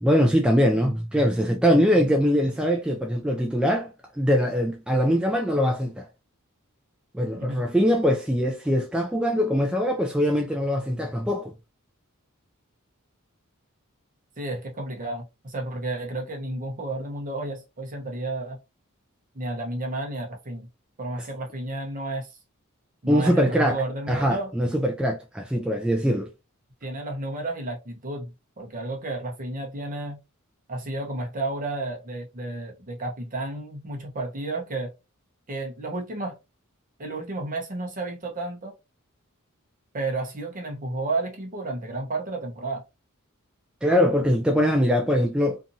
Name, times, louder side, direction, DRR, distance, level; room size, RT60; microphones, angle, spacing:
voice 1, 0.0-6.1 7.1-11.5 23.1-23.8 24.1-26.3 43.8-45.6, equal, 5° right, 0.3 m, -22 dB
voice 2, 7.3-7.6 14.4-18.6 19.3-20.7 21.0-22.3 23.0-24.5 26.8-30.2 30.7-34.9 35.5-36.4 37.0-38.7 39.9-42.8, right 2 dB, 40° right, 0.8 m, -32 dB
2.7 x 2.5 x 2.5 m
head